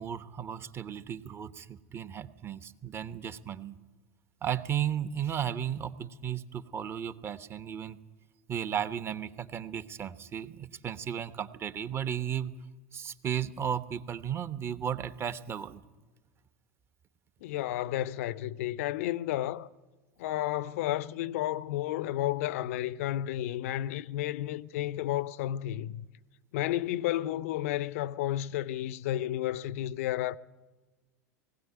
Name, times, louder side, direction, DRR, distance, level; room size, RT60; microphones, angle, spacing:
voice 1, 0.0-3.7 4.4-8.0 8.5-12.5 12.9-15.8, right 9 dB, 30° right, 1.1 m, -34 dB
voice 2, 17.4-19.7 20.2-26.1 26.5-30.4, left 13 dB, 60° left, 0.6 m, -32 dB
19.5 x 17.0 x 9.5 m
figure-of-eight pair, 85°, 9 cm